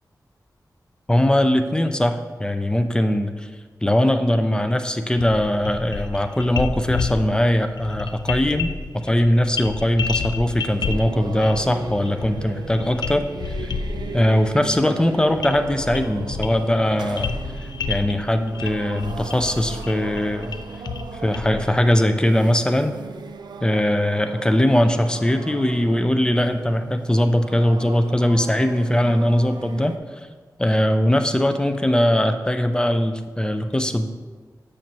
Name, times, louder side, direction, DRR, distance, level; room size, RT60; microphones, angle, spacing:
voice 1, 1.1-3.5 3.8-13.6 14.1-17.3 17.9-20.5 21.2-22.9 23.6-29.9 30.6-34.1, left 1 dB, 10° left, 8 dB, 0.5 m, -20 dB
sound 1, 5.2-22.0, left 5 dB, 80° left, 0.3 m, -31 dB
sound 2, 10.6-30.0, right 5 dB, 90° right, 0.4 m, -37 dB
7.4 x 6.4 x 2.9 m, 1.4 s
wide cardioid pair, 65°, 7 cm